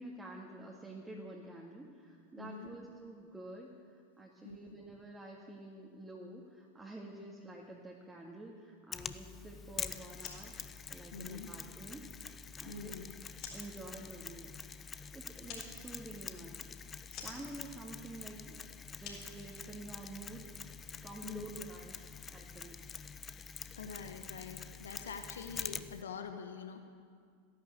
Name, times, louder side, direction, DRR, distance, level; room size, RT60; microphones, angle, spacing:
voice 1, 0.0-10.5 10.9-12.0 12.6-13.0 13.3-14.5 15.1-16.7 17.2-18.6 18.9-20.5 21.0-22.0 22.3-22.8, right 2 dB, 10° right, -2 dB, 2.1 m, -49 dB
voice 2, 2.4-2.7 4.4-4.6 11.1-11.5 12.6-13.0 21.2-21.4 23.8-26.8, left 6 dB, 70° left, 7 dB, 1.2 m, -45 dB
Mechanisms, 8.9-26.0, left 6 dB, 25° left, 0.7 m, -46 dB
sound 1, 10.1-20.2, left 6 dB, 45° left, 4.4 m, -54 dB
15.0 x 11.0 x 8.0 m, 2.1 s
figure-of-eight pair, 85°, 0 cm